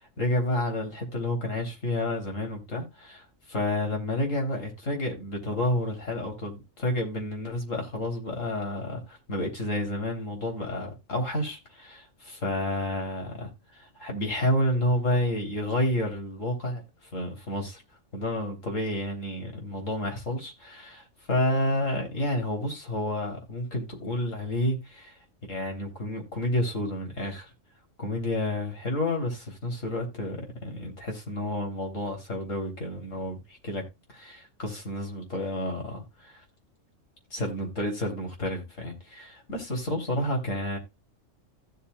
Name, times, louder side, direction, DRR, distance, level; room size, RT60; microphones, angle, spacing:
voice 1, 0.0-3.2 3.5-16.8 17.1-17.8 18.1-25.1 25.5-27.5 28.0-33.8 34.1-36.4 37.3-40.8, left 1 dB, 75° left, 3.9 m, -30 dB
16.0 x 7.0 x 2.3 m
omnidirectional pair, 1.3 m